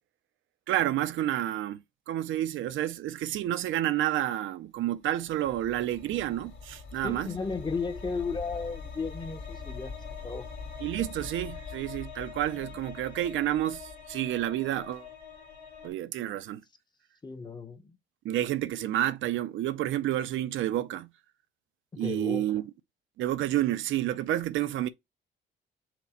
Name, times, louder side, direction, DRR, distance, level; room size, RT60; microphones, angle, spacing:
voice 1, 0.7-1.8 2.1-7.3 10.8-15.1 15.8-16.6 18.2-21.1 22.0-22.6 23.2-24.9, right 13 dB, 75° right, 0.5 m, -29 dB
sound 1, 5.1-15.9, left 5 dB, 75° left, 2.0 m, -43 dB
voice 2, 7.0-10.0 10.2-10.5 17.2-18.0 21.9-22.6, left 4 dB, 20° left, 0.8 m, -34 dB
5.8 x 2.1 x 4.1 m
cardioid pair, 90°, 20 cm